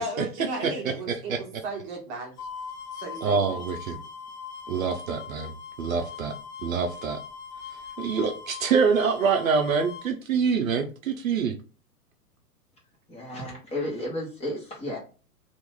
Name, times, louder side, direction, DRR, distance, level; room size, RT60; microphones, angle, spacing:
voice 1, 0.0-2.3 2.9-3.6, right 1 dB, 25° right, 0.9 m, -35 dB
voice 2, 0.6-1.4 3.2-4.0 4.7-5.5 5.8-6.3 6.6-7.2 8.0-11.6, right 5 dB, 60° right, 0.6 m, -25 dB
sound 1, 2.4-10.1, left 7 dB, 65° left, 1.1 m, -40 dB
voice 3, 13.1-15.0, left 1 dB, 15° left, 1.1 m, -33 dB
3.0 x 2.6 x 3.6 m
figure-of-eight pair, 110°, 47 cm